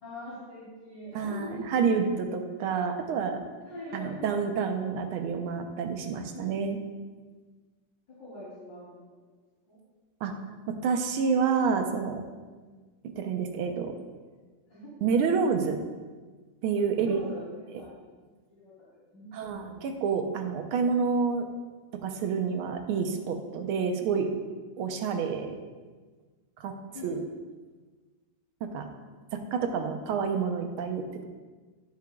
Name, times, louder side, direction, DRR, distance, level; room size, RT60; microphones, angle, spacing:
voice 1, 0.0-1.7 2.6-2.7 3.6-4.4 6.3-6.5 8.1-9.0 9.7-9.8 12.6-12.9 14.7-14.9 16.9-17.9 18.6-18.9 19.1-19.8 26.9-27.1, left 1 dB, 60° left, -12 dB, 3.7 m, -43 dB
voice 2, 1.1-3.4 3.9-6.8 10.2-10.3 10.7-12.2 13.2-13.9 15.0-15.8 16.6-17.2 19.3-21.5 22.0-24.3 24.8-25.5 26.6-26.7 27.0-27.2 28.6-28.9 29.3-31.2, right 5 dB, 90° right, 5 dB, 1.7 m, -28 dB
15.0 x 7.1 x 2.3 m, 1.4 s
omnidirectional pair, 2.3 m